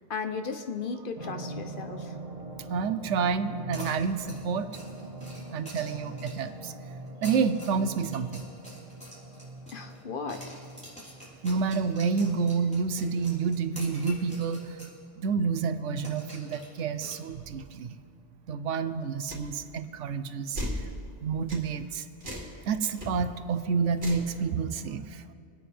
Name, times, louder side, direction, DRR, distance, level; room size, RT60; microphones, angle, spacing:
voice 1, 0.1-2.1 9.7-10.6, left 5 dB, 55° left, 6 dB, 0.9 m, -35 dB
sound 1, 1.1-14.1 14.5-14.6, right 2 dB, 35° right, 1.0 m, -43 dB
voice 2, 2.7-4.7 5.5-6.7 7.2-8.5 11.4-14.8 15.2-17.9 18.5-20.8 21.2-22.1 22.7-25.2, right 5 dB, 90° right, 12 dB, 1.0 m, -29 dB
sound 2, 3.7-6.6 7.1-10.0 10.3-15.0 15.2-15.3 16.0-17.7, equal, 5° left, 3.6 m, -47 dB
sound 3, 19.3-19.5 20.6-20.8 21.5-21.7 22.2-22.5 22.9-23.1 24.0-24.3, equal, 55° right, 2.7 m, -35 dB
25.0 x 9.1 x 3.4 m, 2.3 s
omnidirectional pair, 1.2 m